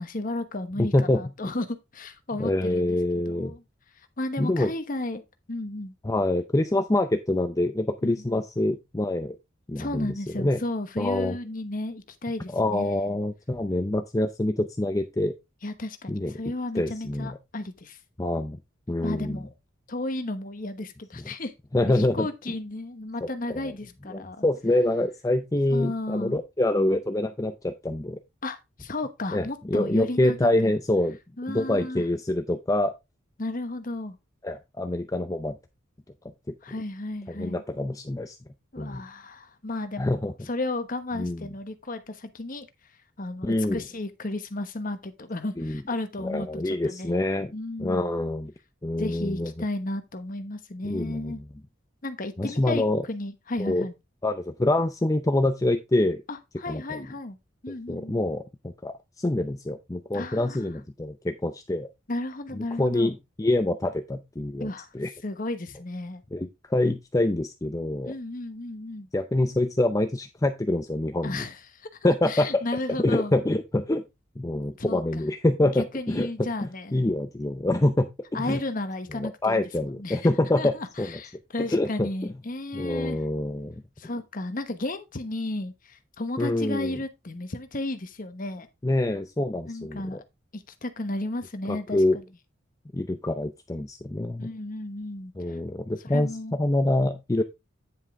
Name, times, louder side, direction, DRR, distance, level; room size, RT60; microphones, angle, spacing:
voice 1, 0.0-3.6 4.2-5.2 5.5-5.9 8.0-8.4 9.8-13.2 15.6-18.0 19.0-19.5 19.9-21.5 21.8-24.4 25.7-26.4 28.4-30.4 30.6-30.7 31.4-32.0 33.4-34.2 36.6-37.6 38.7-40.2 40.5-42.7 43.2-47.2 47.5-48.1 49.0-51.4 52.0-53.9 56.3-57.4 57.6-58.2 60.1-60.7 62.1-63.1 64.6-64.9 65.2-66.2 68.0-69.1 71.2-71.9 72.3-73.3 74.8-75.2 75.7-77.0 78.3-80.3 80.6-83.2 84.0-88.7 89.7-90.2 90.5-92.2 94.4-95.6 96.1-96.6, left 2 dB, 45° left, 1.1 m, -33 dB
voice 2, 0.8-1.5 2.4-3.5 4.4-4.7 6.0-9.4 9.7-10.6 11.0-11.4 12.5-15.3 16.1-16.3 16.7-17.4 18.2-18.6 18.9-19.4 21.7-22.3 23.2-23.3 24.1-28.2 29.3-31.2 31.5-32.9 34.4-35.6 37.3-38.4 38.8-39.0 40.0-40.3 41.1-41.5 43.4-43.8 45.6-45.8 46.2-47.5 47.8-48.5 48.8-49.5 50.8-51.4 52.4-53.0 53.6-53.9 54.2-56.2 56.7-57.0 57.9-61.9 62.5-64.7 64.9-65.1 66.3-68.1 69.1-71.4 72.0-72.6 73.0-74.0 74.4-76.3 76.6-78.6 79.2-81.1 81.7-82.3 82.7-83.8 86.4-86.9 88.8-90.0 91.7-92.2 92.9-94.5 95.4-97.4, left 1 dB, 15° left, 0.5 m, -26 dB
9.8 x 5.4 x 3.6 m
head